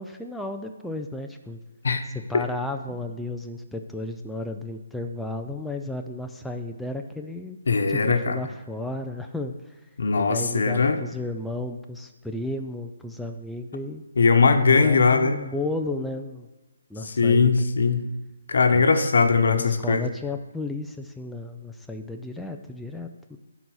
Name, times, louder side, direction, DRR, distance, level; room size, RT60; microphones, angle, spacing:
voice 1, 0.0-1.6 2.1-7.6 7.9-9.8 10.2-14.0 14.6-16.5 16.9-17.7 18.7-18.9 19.3-23.4, left 2 dB, ahead, 3 dB, 0.3 m, -33 dB
voice 2, 7.7-8.4 10.0-11.0 14.2-15.4 17.2-18.1 18.5-20.0, left 4 dB, 70° left, 8 dB, 1.0 m, -20 dB
10.5 x 4.1 x 6.2 m, 1.1 s
hypercardioid pair, 165°, 0 cm